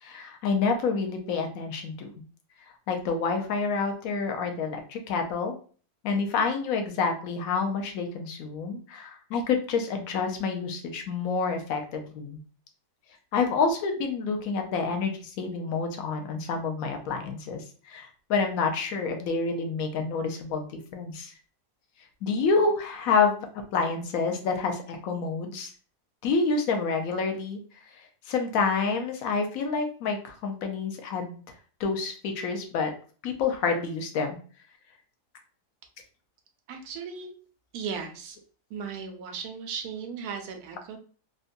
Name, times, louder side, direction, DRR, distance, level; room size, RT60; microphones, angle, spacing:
voice 1, 0.0-2.1 2.9-5.5 6.0-12.4 13.3-21.3 22.2-23.5 23.7-25.7 26.2-27.6 28.3-31.4 31.8-32.9 33.2-34.4, left 4 dB, 70° left, 4 dB, 1.0 m, -28 dB
voice 2, 36.7-37.3 37.7-38.4 38.7-41.0, right 6 dB, 85° right, 5 dB, 1.1 m, -36 dB
3.7 x 2.2 x 2.5 m, 0.41 s
omnidirectional pair, 1.6 m